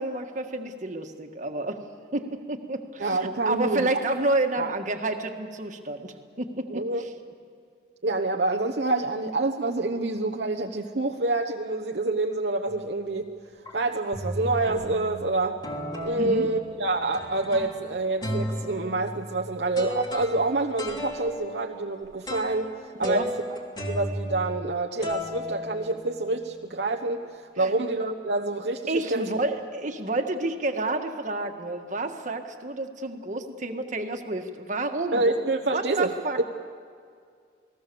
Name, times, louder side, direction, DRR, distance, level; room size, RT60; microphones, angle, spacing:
voice 1, 0.0-1.8 2.1-3.2 3.4-6.9 16.2-16.5 23.0-23.3 27.6-27.7 28.9-35.2 35.7-36.4, right 2 dB, 40° right, 4 dB, 1.7 m, -29 dB
voice 2, 3.0-3.9 4.6-4.7 6.7-7.1 8.0-13.3 13.7-15.6 16.0-23.3 23.8-29.3 35.1-36.1, right 2 dB, 65° right, 2 dB, 1.1 m, -27 dB
sound 1, 12.7-13.0 13.7-13.8 14.1-15.2 15.6-17.9 18.2-24.7 25.0-26.4, equal, 25° left, 3.2 m, -35 dB
29.0 x 19.5 x 7.0 m, 2.2 s
head